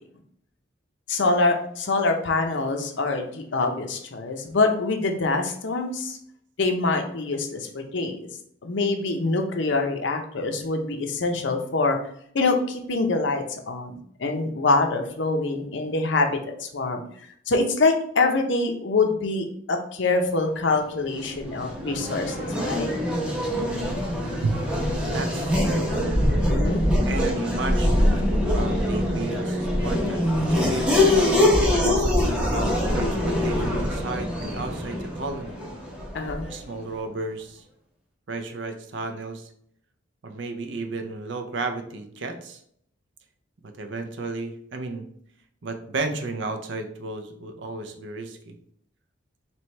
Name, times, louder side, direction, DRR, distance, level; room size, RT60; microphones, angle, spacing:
voice 1, 1.1-6.2 6.6-8.2 8.6-12.0 12.3-13.9 14.2-17.0 17.5-22.9 26.4-26.8 36.1-36.5, left 3 dB, 60° left, 4 dB, 0.6 m, -25 dB
Race car auto racing / Accelerating revving vroom, 21.0-36.6, left 1 dB, 5° right, 0.7 m, -24 dB
voice 2, 25.1-25.9 27.1-31.1 31.7-35.6 36.5-37.7 38.3-39.5 40.2-42.6 43.6-45.1 45.6-48.5, right 3 dB, 60° right, 7 dB, 0.5 m, -33 dB
3.2 x 3.0 x 4.2 m, 0.66 s
head